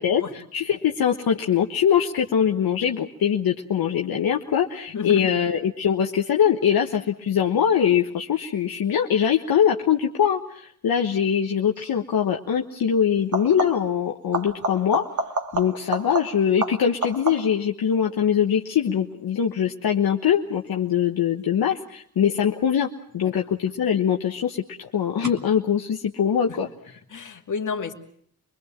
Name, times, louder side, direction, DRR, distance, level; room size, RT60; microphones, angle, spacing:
voice 1, 0.0-15.0 15.5-26.7, left 8 dB, 75° left, 1 dB, 1.3 m, -22 dB
voice 2, 4.9-5.3 27.1-27.9, left 5 dB, 55° left, 4 dB, 2.6 m, -30 dB
sound 1, 11.7-12.0 13.2-14.0 14.3-17.7 23.1-23.7 25.2-25.3, right 2 dB, 55° right, 2.4 m, -30 dB
25.5 x 21.0 x 7.4 m, 0.63 s
cardioid pair, 70°, 36 cm